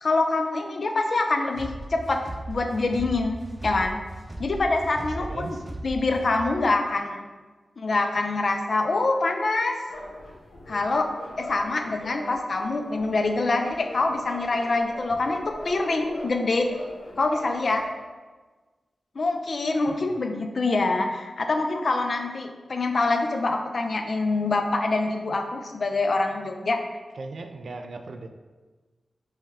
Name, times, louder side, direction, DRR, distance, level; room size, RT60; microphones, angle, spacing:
voice 1, 0.0-4.0 4.4-5.6 5.8-7.3 7.8-9.8 10.7-11.1 11.4-16.7 17.2-17.8 19.2-26.8, left 3 dB, 60° left, 4 dB, 0.4 m, -25 dB
sound 1, 1.5-6.6, right 1 dB, 30° right, 0.6 m, -37 dB
voice 2, 5.0-5.6 19.9-20.2 27.2-28.3, right 3 dB, 70° right, 6 dB, 0.3 m, -38 dB
sound 2, 9.9-17.9, left 1 dB, 90° left, 0.8 m, -41 dB
5.3 x 2.2 x 3.4 m, 1.3 s
cardioid pair, 50°, 0 cm